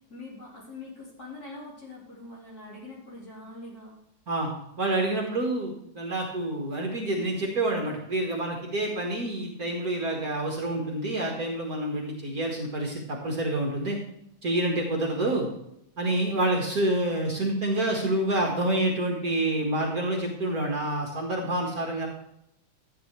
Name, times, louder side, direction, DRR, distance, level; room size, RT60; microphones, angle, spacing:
voice 1, 0.1-3.9, left 2 dB, 40° left, -6 dB, 4.5 m, -43 dB
voice 2, 4.8-14.0 14.4-15.5 16.0-22.1, right 1 dB, 45° right, 0 dB, 1.9 m, -28 dB
13.0 x 8.9 x 3.3 m, 0.79 s
omnidirectional pair, 2.4 m